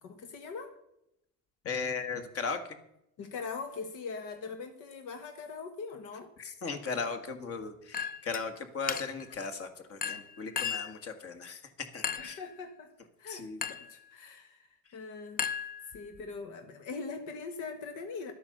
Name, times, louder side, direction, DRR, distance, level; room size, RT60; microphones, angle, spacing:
voice 1, 0.0-0.7 3.2-6.3 12.2-12.9 13.2-15.7 15.9-18.3, left 4 dB, 85° left, 6 dB, 1.4 m, -42 dB
voice 2, 1.6-2.8 6.4-12.4 13.3-13.6, left 5 dB, 50° left, 7 dB, 1.7 m, -37 dB
Chink clink, 7.9-8.5 8.9-9.3 10.0-11.0 12.0-12.4 13.6-13.9 15.4-16.2, left 7 dB, 30° left, 0.5 m, -35 dB
11.5 x 8.7 x 6.5 m, 0.82 s
cardioid pair, 135°, 30 cm